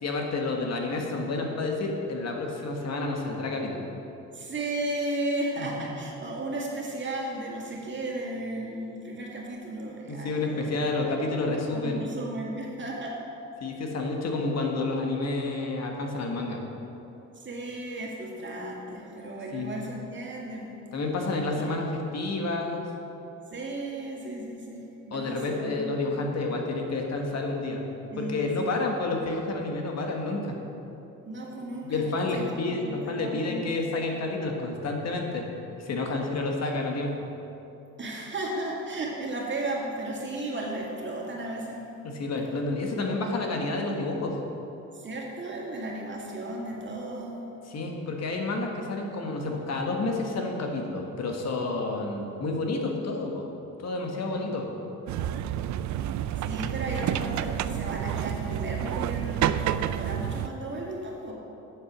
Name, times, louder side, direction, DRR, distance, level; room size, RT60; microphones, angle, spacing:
voice 1, 0.0-3.9 5.6-5.9 10.1-12.1 13.6-16.6 19.5-19.7 20.9-21.9 22.1-22.8 25.1-27.8 28.2-30.6 31.8-35.4 35.8-37.1 42.1-44.3 47.7-53.4 53.8-54.7, left 2 dB, 60° left, 1 dB, 1.4 m, -30 dB
voice 2, 4.3-11.1 11.7-13.2 17.3-20.8 23.5-26.2 28.1-28.9 31.3-32.0 32.3-32.5 32.9-33.7 38.0-41.8 44.9-47.4 56.4-61.3, right 1 dB, 40° right, -2 dB, 2.2 m, -35 dB
sound 1, 55.1-60.5, right 11 dB, 70° right, 0.4 m, -29 dB
9.1 x 7.0 x 6.1 m, 3.0 s
cardioid pair, 90°, 30 cm